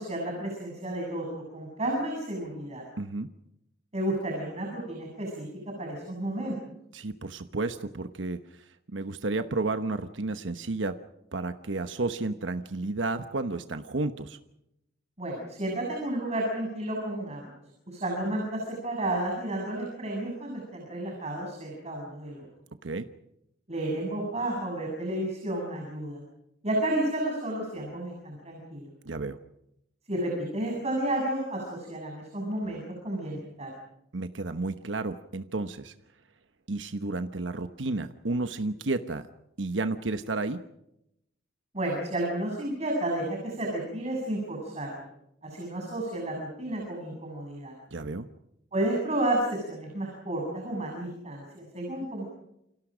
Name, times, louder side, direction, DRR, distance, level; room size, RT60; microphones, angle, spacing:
voice 1, 0.0-2.8 3.9-5.5 5.8-6.5 15.2-17.5 17.9-22.5 23.7-26.2 26.6-28.9 30.1-33.7 41.7-45.1 45.4-47.7 48.7-52.2, right 1 dB, 35° right, 0 dB, 7.5 m, -31 dB
voice 2, 3.0-3.3 6.9-11.0 11.3-14.4 22.8-23.1 29.0-29.4 34.1-35.9 36.7-39.3 39.6-40.6 47.9-48.3, right 3 dB, 85° right, 9 dB, 1.1 m, -32 dB
29.5 x 26.5 x 5.1 m, 0.82 s
head